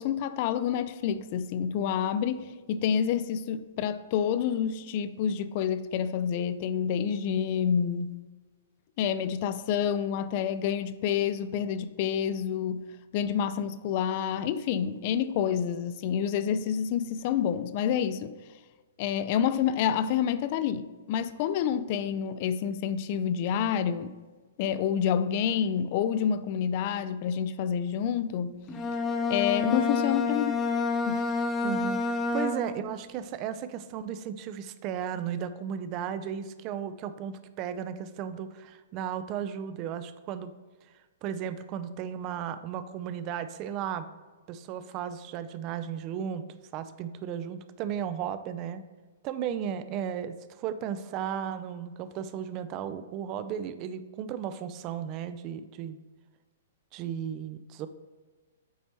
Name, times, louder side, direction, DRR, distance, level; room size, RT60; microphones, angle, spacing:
voice 1, 0.0-8.1 9.0-12.9 13.1-18.3 19.0-24.2 24.6-28.6 29.3-30.6 31.1-31.3, left 8 dB, 45° left, 0.3 m, -28 dB
Bowed string instrument, 28.7-32.9, left 4 dB, 15° left, 0.7 m, -28 dB
voice 2, 31.6-40.5 41.2-44.1 44.5-46.4 46.7-48.8 49.2-56.0 56.9-57.9, right 8 dB, 35° right, 0.4 m, -35 dB
8.1 x 4.1 x 3.1 m
figure-of-eight pair, 115°, 0 cm